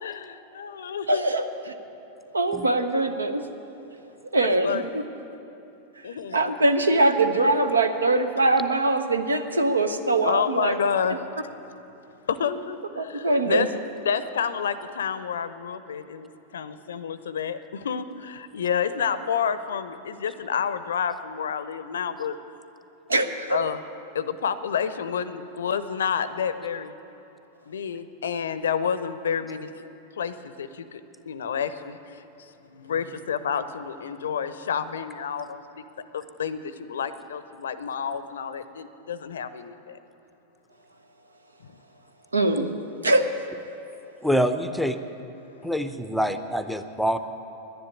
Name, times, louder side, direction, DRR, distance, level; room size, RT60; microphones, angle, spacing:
voice 1, 0.0-1.3 2.5-2.6 2.9-3.0 4.3-5.0 6.0-6.4 10.2-11.5 12.3-13.7 14.0-22.4 23.5-23.8 24.1-26.9 27.7-29.7 30.2-35.8 36.1-40.0 41.6-41.7, left 7 dB, 65° left, 13 dB, 0.6 m, -29 dB
voice 2, 1.1-1.4 2.3-3.4 4.3-5.0 6.3-10.7 13.0-13.7 23.1-23.6 42.3-42.7 43.0-43.2, right 2 dB, 75° right, 9 dB, 0.8 m, -22 dB
voice 3, 44.2-45.0 45.6-47.2, equal, ahead, 10 dB, 0.6 m, -25 dB
10.5 x 10.5 x 9.8 m, 2.9 s
figure-of-eight pair, 90°, 0 cm